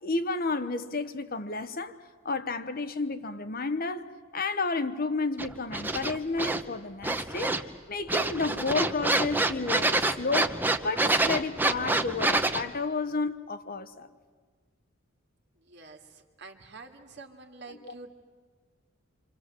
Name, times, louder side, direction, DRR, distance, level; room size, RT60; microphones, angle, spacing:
voice 1, 0.0-2.0 2.2-4.1 4.3-7.6 7.9-14.1 17.8-17.9, left 3 dB, 45° left, 1.0 m, -31 dB
sound 1, 5.4-6.6 7.0-7.8 8.1-12.6, right 2 dB, 10° right, 0.9 m, -27 dB
voice 2, 15.6-18.1, right 3 dB, 55° right, 2.4 m, -47 dB
27.5 x 26.0 x 7.7 m
head